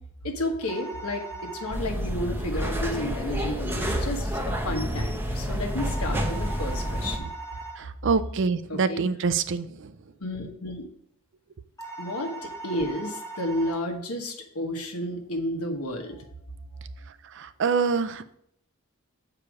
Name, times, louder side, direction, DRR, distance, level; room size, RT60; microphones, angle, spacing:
voice 1, 0.2-1.2 1.6-7.3 8.7-9.0 10.2-10.8 12.0-16.3, left 1 dB, 80° left, 4 dB, 1.3 m, -31 dB
sound 1, 0.6-1.8 5.8-7.8 11.8-13.8, right 3 dB, 15° left, 2.3 m, -39 dB
sound 2, 1.7-7.2, equal, 10° right, 0.7 m, -29 dB
voice 2, 7.8-9.7 17.4-18.4, right 5 dB, 55° right, 13 dB, 0.4 m, -25 dB
6.8 x 4.9 x 4.8 m, 0.69 s
head